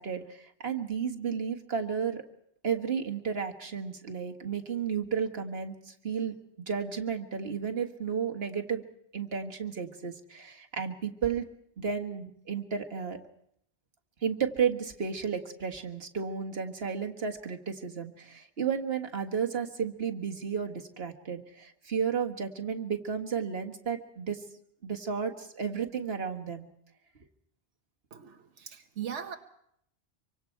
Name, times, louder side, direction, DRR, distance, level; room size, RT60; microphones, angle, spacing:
voice 1, 0.0-2.2 2.6-6.4 6.7-8.8 9.1-11.5 11.8-13.2 14.2-24.4 24.8-26.7, right 6 dB, 60° right, 3 dB, 1.9 m, -33 dB
voice 2, 28.1-29.3, right 8 dB, 90° right, 5 dB, 1.4 m, -39 dB
26.0 x 25.0 x 4.6 m, 0.71 s
omnidirectional pair, 1.2 m